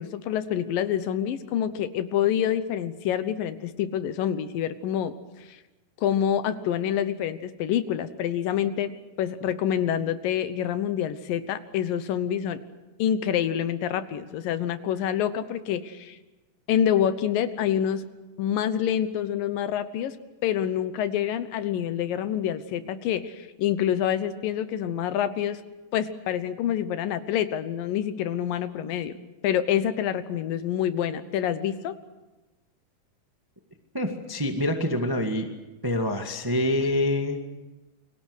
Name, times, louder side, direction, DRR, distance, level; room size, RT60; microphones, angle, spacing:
voice 1, 0.0-5.1 6.0-8.9 9.2-12.6 13.0-16.2 16.7-18.1 18.4-20.2 20.4-25.6 25.9-29.1 29.4-32.0, left 10 dB, 70° left, 12 dB, 2.6 m, -27 dB
voice 2, 33.9-35.5 35.8-37.4, left 1 dB, 25° right, 4 dB, 0.5 m, -26 dB
29.5 x 23.5 x 6.4 m, 1.1 s
omnidirectional pair, 4.3 m